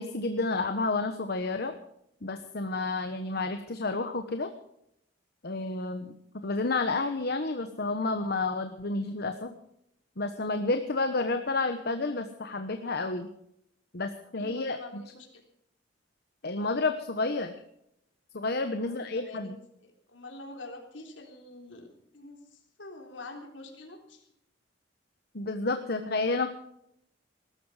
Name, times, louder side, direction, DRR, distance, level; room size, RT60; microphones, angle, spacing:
voice 1, 0.0-1.7 2.2-4.5 5.4-6.1 6.4-9.5 10.2-13.3 13.9-15.0 16.4-17.5 18.3-19.6 25.3-26.5, left 3 dB, 60° left, 7 dB, 1.2 m, -30 dB
voice 2, 14.4-15.4 18.6-19.6 20.1-21.9 22.1-24.3, left 2 dB, 80° left, 3 dB, 3.6 m, -46 dB
20.0 x 13.0 x 5.0 m, 0.75 s
head